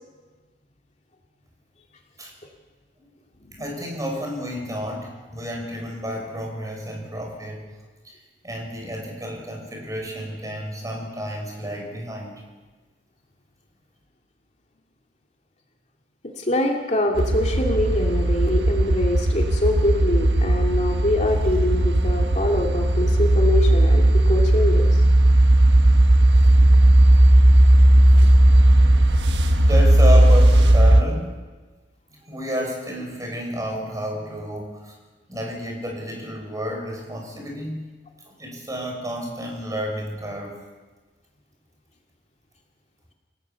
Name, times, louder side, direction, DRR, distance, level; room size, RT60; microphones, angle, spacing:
voice 1, 3.6-7.7 8.0-8.2 8.4-12.4 29.6-31.3 32.2-34.9 35.3-37.9 38.2-40.6, equal, 20° right, 1 dB, 6.1 m, -30 dB
voice 2, 16.4-25.0, left 1 dB, 40° left, 1 dB, 2.6 m, -24 dB
sound 1, 17.2-31.0, right 1 dB, 75° right, 1.5 m, -16 dB
28.5 x 17.0 x 7.1 m, 1.3 s
head